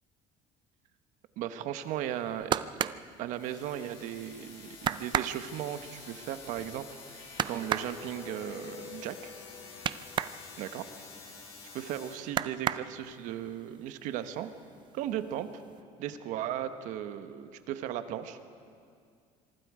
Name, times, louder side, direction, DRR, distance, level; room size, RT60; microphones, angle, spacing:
voice 1, 1.4-2.7 3.2-9.3 10.6-10.8 11.7-14.5 14.9-15.6 16.0-18.4, right 11 dB, 70° right, 9 dB, 1.3 m, -36 dB
sound 1, 2.1-4.0 4.4-4.5 4.8-10.4 10.8-11.9 12.2-13.3 13.8-14.4 14.7-15.4 15.7-15.8, right 9 dB, 35° right, 0.5 m, -34 dB
sound 2, 3.3-12.1, left 4 dB, 40° left, 6.5 m, -49 dB
sound 3, 7.1-13.4, left 6 dB, 60° left, 5.6 m, -51 dB
26.0 x 23.5 x 5.0 m, 2.3 s
cardioid pair, 135°, 13 cm